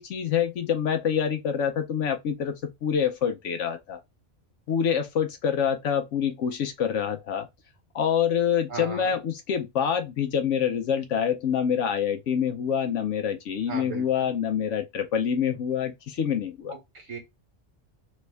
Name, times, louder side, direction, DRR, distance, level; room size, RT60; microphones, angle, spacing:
voice 1, 0.0-4.0 4.7-7.5 7.9-16.7, left 8 dB, 75° left, 1.0 m, -26 dB
voice 2, 8.7-9.1 13.7-14.3 16.7-17.2, right 4 dB, 90° right, 2.1 m, -37 dB
3.4 x 3.1 x 3.3 m
omnidirectional pair, 1.3 m